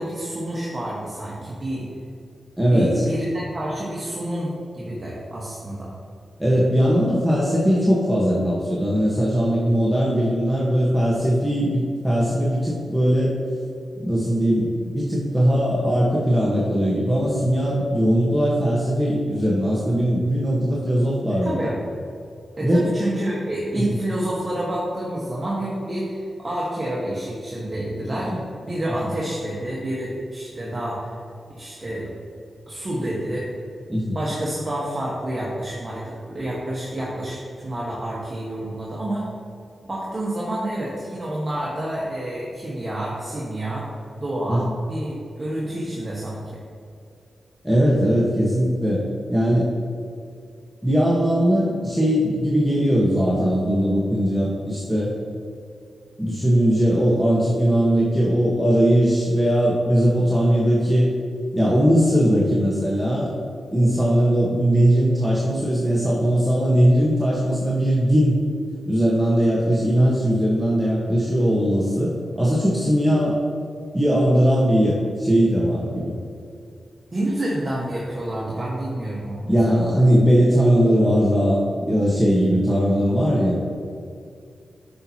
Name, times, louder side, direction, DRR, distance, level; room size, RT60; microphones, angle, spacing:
voice 1, 0.0-1.9 2.7-5.9 21.4-21.8 22.6-31.2 31.5-32.1 32.7-33.4 34.1-39.2 39.8-43.9 44.2-46.5 77.1-79.6, right 1 dB, 35° right, -6 dB, 1.4 m, -28 dB
voice 2, 2.6-3.0 6.4-13.3 14.0-21.7 22.6-22.9 28.3-28.4 29.0-29.1 33.9-34.2 44.5-44.7 47.6-49.0 49.3-49.7 50.8-55.1 56.2-61.1 61.5-63.3 63.7-68.4 68.8-73.4 73.9-76.2 79.5-83.6, equal, 5° right, -6 dB, 1.3 m, -19 dB
8.6 x 6.0 x 2.9 m, 2.3 s
cardioid pair, 55°, 0 cm